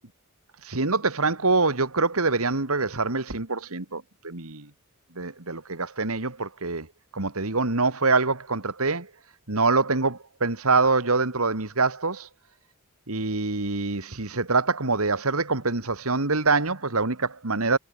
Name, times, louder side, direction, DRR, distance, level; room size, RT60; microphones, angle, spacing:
voice 1, 0.6-4.7 5.2-6.9 7.1-9.1 9.5-12.3 13.1-17.8, right 3 dB, 70° right, 2.2 m, -25 dB
head